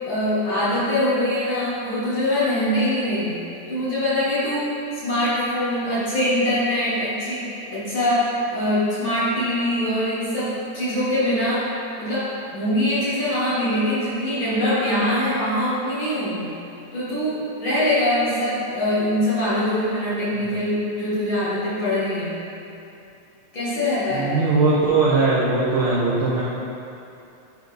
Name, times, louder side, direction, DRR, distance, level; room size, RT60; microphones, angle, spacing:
voice 1, 0.0-3.4 3.7-7.4 7.7-11.7 12.0-12.3 12.5-16.5 16.9-22.4 23.5-24.7, left 1 dB, 45° left, -11 dB, 2.1 m, -23 dB
voice 2, 24.1-26.4, right 3 dB, 75° right, -7 dB, 1.2 m, -20 dB
11.0 x 4.3 x 3.3 m, 2.7 s
omnidirectional pair, 3.5 m